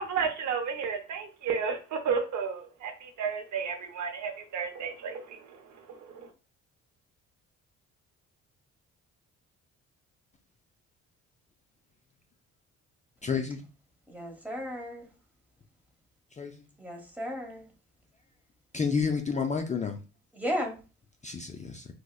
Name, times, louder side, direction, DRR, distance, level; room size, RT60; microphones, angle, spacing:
voice 1, 0.0-5.6 5.9-6.3, right 6 dB, 70° right, 6 dB, 0.7 m, -32 dB
voice 2, 13.2-13.6 16.4-16.5 18.7-20.0 21.2-21.9, left 5 dB, 25° left, 5 dB, 0.3 m, -30 dB
voice 3, 14.1-15.1 16.8-17.7 20.3-20.8, equal, 5° right, 0 dB, 1.1 m, -34 dB
4.6 x 2.1 x 2.3 m, 0.32 s
cardioid pair, 90°, 30 cm